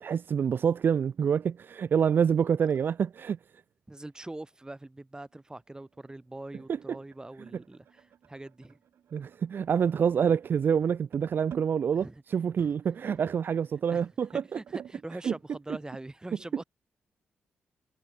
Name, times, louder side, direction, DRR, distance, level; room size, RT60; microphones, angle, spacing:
voice 1, 0.0-3.4 9.1-14.6 15.2-15.3, right 7 dB, 60° right, 0.4 m, -27 dB
voice 2, 3.9-8.8 11.9-12.2 12.6-12.7 13.2-13.3 13.9-16.6, right 2 dB, 20° right, 4.6 m, -43 dB
sound 1, 5.3-15.0, right 9 dB, 75° right, 5.8 m, -54 dB
supercardioid pair, 55°, 4 cm